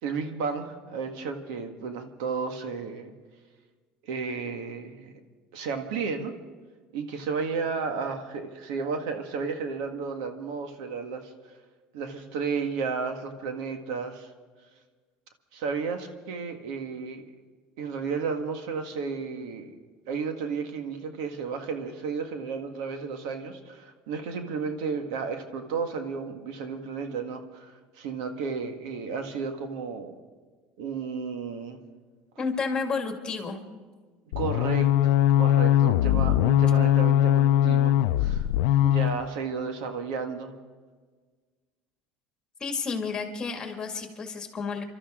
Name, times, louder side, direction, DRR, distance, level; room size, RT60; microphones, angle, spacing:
voice 1, 0.0-3.1 4.0-5.1 5.5-6.3 6.9-11.3 11.9-14.3 15.5-17.3 17.8-19.7 20.1-30.2 30.8-31.8 34.3-38.5 38.8-40.6, right 5 dB, 85° right, 6 dB, 1.6 m, -33 dB
voice 2, 32.4-33.6 42.6-44.8, left 4 dB, 25° left, 3 dB, 2.2 m, -31 dB
sound 1, 34.3-39.2, left 12 dB, 90° left, 0.5 m, -21 dB
28.5 x 13.0 x 3.7 m, 1.5 s
cardioid pair, 140°, 3 cm